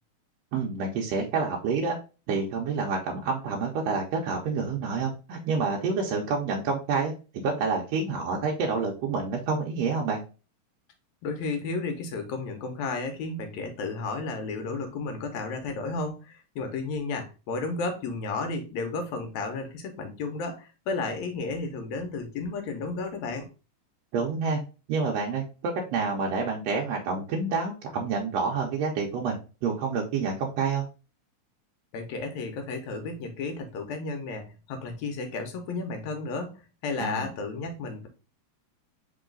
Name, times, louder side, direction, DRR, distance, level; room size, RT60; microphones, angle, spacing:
voice 1, 0.5-2.0 2.3-10.2 24.1-24.6 24.9-30.8 37.0-37.3, right 4 dB, 75° right, -1 dB, 1.7 m, -28 dB
voice 2, 11.2-23.5 31.9-38.1, left 3 dB, 80° left, 5 dB, 2.1 m, -33 dB
4.7 x 3.0 x 3.7 m, 0.33 s
omnidirectional pair, 3.3 m